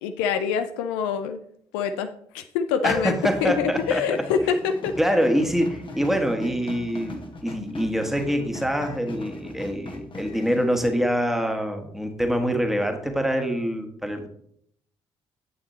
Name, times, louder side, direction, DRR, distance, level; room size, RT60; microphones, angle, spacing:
voice 1, 0.0-1.4 1.7-4.9, left 6 dB, 65° left, 9 dB, 0.5 m, -25 dB
voice 2, 2.8-4.0 5.0-14.3, equal, ahead, 4 dB, 1.6 m, -25 dB
sound 1, 3.2-10.7, left 2 dB, 35° left, 1.3 m, -40 dB
9.0 x 8.4 x 3.1 m, 0.67 s
figure-of-eight pair, 40°, 14 cm